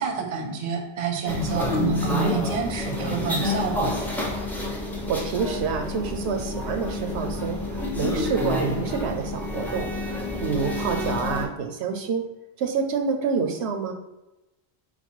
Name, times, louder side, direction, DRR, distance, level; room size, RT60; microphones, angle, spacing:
voice 1, 0.0-3.9, right 5 dB, 45° right, 3 dB, 0.6 m, -28 dB
sound 1, 1.3-11.5, left 2 dB, ahead, 0.4 m, -29 dB
voice 2, 5.1-9.9 10.4-12.3 12.6-13.9, right 5 dB, 85° right, 6 dB, 0.8 m, -27 dB
4.2 x 2.2 x 4.3 m, 0.96 s
omnidirectional pair, 1.1 m